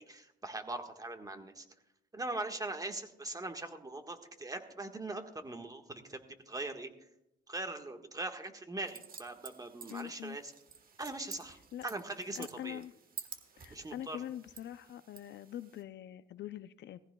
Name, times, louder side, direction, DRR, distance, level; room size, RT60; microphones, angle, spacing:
voice 1, 0.0-1.6 2.1-6.2 6.5-6.9 7.5-10.5 11.0-11.6 11.8-12.8 13.7-14.2, right 2 dB, 20° right, 5 dB, 1.5 m, -41 dB
sound 1, 8.8-15.8, right 6 dB, 45° right, 1.3 m, -51 dB
voice 2, 9.9-10.4 11.7-11.9 12.4-12.9 13.6-17.0, left 11 dB, 65° left, 13 dB, 0.5 m, -44 dB
18.0 x 15.0 x 2.3 m, 0.84 s
cardioid pair, 90°, 20 cm